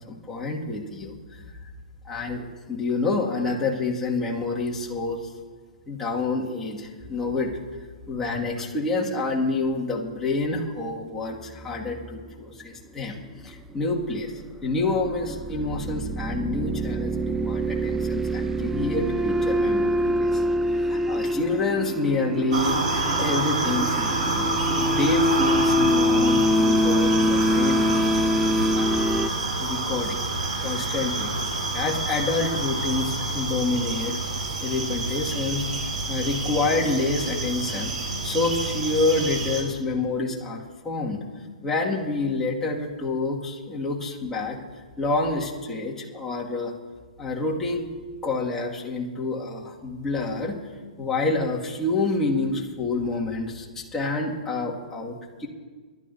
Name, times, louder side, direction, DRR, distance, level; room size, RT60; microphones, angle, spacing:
voice 1, 0.1-1.4 2.0-5.3 5.9-7.5 8.1-13.2 13.4-14.3 14.6-20.4 20.7-22.8 23.2-24.5 24.7-28.2 28.7-29.0 29.6-30.2 30.6-31.3 31.7-34.2 34.6-35.7 36.1-37.9 38.2-41.2 41.6-44.6 45.0-46.7 47.2-47.9 48.2-50.6 51.0-55.5, left 3 dB, 10° left, -3 dB, 2.1 m, -28 dB
sound 1, 11.5-12.3 14.6-29.3, equal, 10° right, 0.4 m, -25 dB
sound 2, 22.5-39.6, right 2 dB, 60° right, 4.4 m, -28 dB
29.0 x 12.5 x 2.8 m, 1.4 s
figure-of-eight pair, 125°, 4 cm